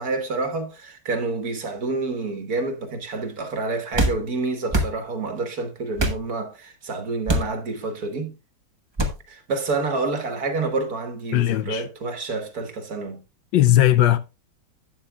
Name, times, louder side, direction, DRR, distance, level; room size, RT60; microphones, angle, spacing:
voice 1, 0.0-8.3 9.3-13.2, right 3 dB, 50° right, 1.6 m, -28 dB
sound 1, 3.9-4.2 4.7-4.9 6.0-6.2 7.3-7.5 9.0-9.2, right 1 dB, 25° right, 0.6 m, -22 dB
voice 2, 11.3-11.8 13.5-14.2, left 13 dB, 75° left, 1.2 m, -17 dB
11.5 x 8.8 x 2.3 m
omnidirectional pair, 2.2 m